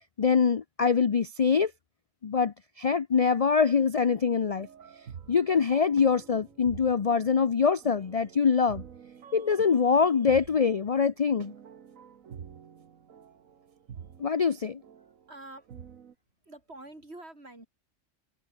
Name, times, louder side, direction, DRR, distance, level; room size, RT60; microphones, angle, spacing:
voice 1, 0.2-1.7 2.2-4.7 5.3-8.8 9.3-11.5 14.2-14.8, left 6 dB, 40° left, 0.5 m, -24 dB
sound 1, 4.6-16.1, right 8 dB, 90° right, 1.6 m, -48 dB
voice 2, 15.3-15.7 16.4-17.7, right 2 dB, 55° right, 5.5 m, -46 dB
omnidirectional pair, 1.3 m